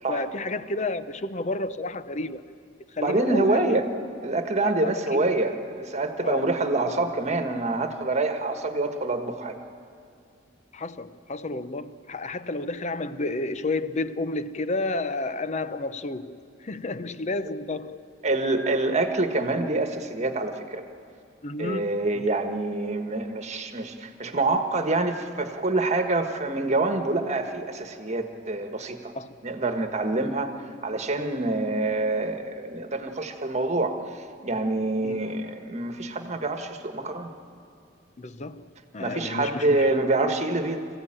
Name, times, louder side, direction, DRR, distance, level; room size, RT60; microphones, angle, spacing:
voice 1, 0.1-2.5 2.9-3.8 4.6-5.3 6.2-6.6 10.7-18.0 21.4-22.2 29.2-29.3 35.0-35.2 38.2-39.9, left 2 dB, 35° left, 0.7 m, -31 dB
voice 2, 3.0-3.9 4.2-9.6 18.2-20.8 21.6-29.2 29.4-37.3 39.0-40.8, right 2 dB, 35° right, 1.4 m, -26 dB
25.5 x 15.5 x 8.9 m
head